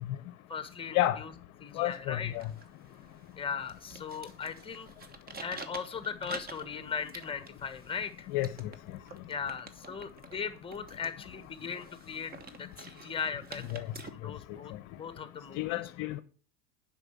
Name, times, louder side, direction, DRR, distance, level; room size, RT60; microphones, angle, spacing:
voice 1, 0.5-1.3 1.6-2.3 3.4-4.9 5.4-8.3 9.3-12.3 12.6-13.6 14.1-15.8, left 6 dB, 15° left, 1.3 m, -38 dB
voice 2, 1.7-2.5 8.3-8.7 13.7-13.9 14.5-14.6 15.5-16.2, left 14 dB, 50° left, 0.8 m, -30 dB
sound 1, 2.3-14.1, right 4 dB, 25° right, 1.1 m, -49 dB
8.0 x 5.8 x 7.2 m
hypercardioid pair, 100°, 40 cm